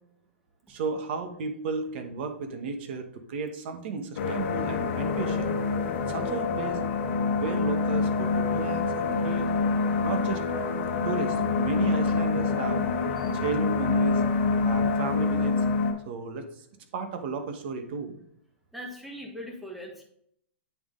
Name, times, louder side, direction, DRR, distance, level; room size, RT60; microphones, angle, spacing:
voice 1, 0.7-5.6 6.0-6.8 7.3-9.5 10.0-10.4 11.0-12.8 13.3-14.2 14.6-15.5 16.0-16.6 16.9-18.2, right 4 dB, 55° right, 7 dB, 1.1 m, -33 dB
sound 1, 4.2-15.9, left 4 dB, 60° left, 1.1 m, -26 dB
voice 2, 18.7-20.0, equal, ahead, 1 dB, 1.3 m, -41 dB
8.7 x 3.6 x 3.7 m, 0.68 s
hypercardioid pair, 135°, 7 cm